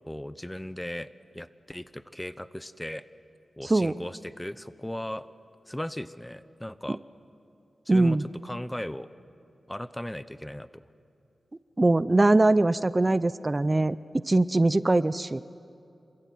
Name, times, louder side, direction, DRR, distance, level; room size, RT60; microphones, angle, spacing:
voice 1, 0.1-3.0 3.6-5.3 5.7-7.0 7.9-8.2 8.4-9.1 9.7-10.8, left 1 dB, 10° left, 14 dB, 0.8 m, -37 dB
voice 2, 3.6-3.9 6.9-7.0 7.9-8.3 11.8-15.4, right 2 dB, 30° right, 16 dB, 0.5 m, -22 dB
27.0 x 23.5 x 9.3 m, 2.7 s
wide cardioid pair, 75°, 0 cm